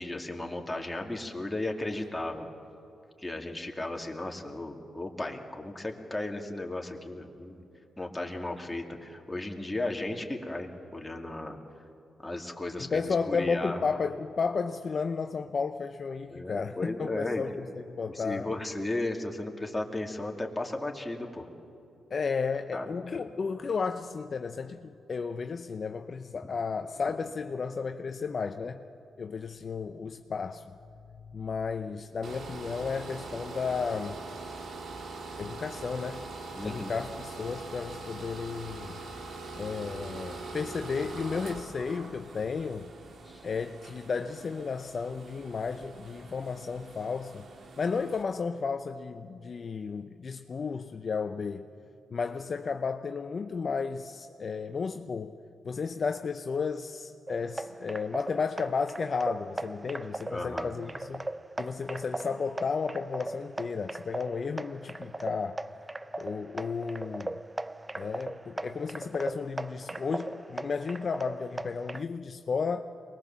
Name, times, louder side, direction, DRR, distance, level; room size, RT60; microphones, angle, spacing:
voice 1, 0.0-2.5 3.2-7.6 8.0-11.6 12.2-13.8 16.3-17.4 18.1-21.5 22.7-23.2 36.5-36.9 43.2-43.4 60.3-60.7, left 2 dB, 15° left, 2 dB, 2.7 m, -35 dB
voice 2, 12.8-18.5 22.1-28.8 29.2-30.7 31.3-34.2 35.4-36.3 36.6-39.0 39.6-42.9 43.4-47.5 47.8-51.7 52.1-55.4 55.6-61.3 61.6-65.6 66.2-67.4 68.0-72.8, left 5 dB, 50° left, 7 dB, 0.7 m, -33 dB
sound 1, 32.2-48.2, right 3 dB, 65° right, 2.2 m, -43 dB
sound 2, 57.3-72.0, right 2 dB, 20° right, 0.4 m, -39 dB
23.0 x 20.5 x 7.4 m, 2.6 s
supercardioid pair, 60°, 0 cm